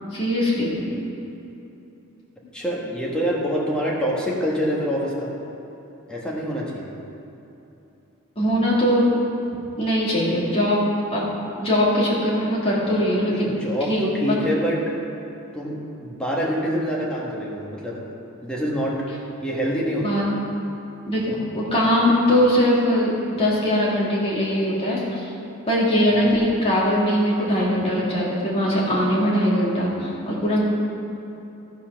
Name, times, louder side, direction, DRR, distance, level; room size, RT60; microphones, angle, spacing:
voice 1, 0.1-0.8 8.4-9.0 9.8-10.8 11.1-11.3 11.5-13.5 13.9-14.0 20.0-20.4 21.1-21.2 21.5-25.3 25.7-30.6, equal, 25° left, -7 dB, 2.3 m, -21 dB
voice 2, 2.5-5.3 6.1-6.9 13.3-14.8 15.5-18.0 18.4-19.1 19.4-20.3 21.3-21.4 26.2-26.3, equal, 5° left, -4 dB, 1.4 m, -26 dB
13.5 x 5.7 x 5.8 m, 2.9 s
head